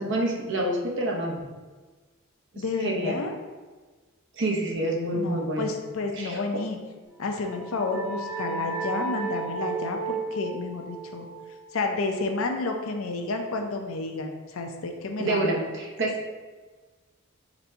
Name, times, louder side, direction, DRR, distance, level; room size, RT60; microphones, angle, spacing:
voice 1, 0.0-1.4 2.5-3.2 4.3-5.7 6.1-6.6 15.2-16.1, right 1 dB, 55° right, -1 dB, 0.7 m, -28 dB
voice 2, 2.6-3.4 5.1-6.8 7.2-11.3 11.7-15.6, left 3 dB, 75° left, 4 dB, 0.5 m, -30 dB
sound 1, 7.2-12.6, right 3 dB, 5° right, 0.9 m, -35 dB
4.0 x 2.7 x 4.3 m, 1.3 s
head